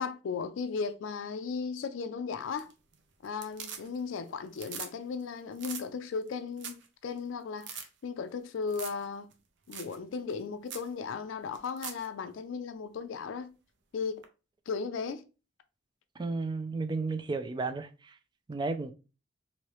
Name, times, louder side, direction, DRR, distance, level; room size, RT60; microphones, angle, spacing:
voice 1, 0.0-2.7 3.2-9.3 9.7-13.5 13.9-14.2 14.7-15.2, left 5 dB, 80° left, 0.4 m, -36 dB
sound 1, 2.4-2.9 3.2-4.2 4.5-4.9 5.2-5.3 5.6-5.8 6.3-6.4 6.6-6.9 7.2-7.3 7.6-7.9 8.7-9.0 9.3-9.4 9.7-10.0 10.3-10.4 10.7-10.9 11.5-12.1 14.2-14.3, right 7 dB, 65° right, 0.6 m, -42 dB
voice 2, 16.2-18.1 18.5-18.9, right 3 dB, 25° right, 0.3 m, -33 dB
3.0 x 2.7 x 3.0 m
head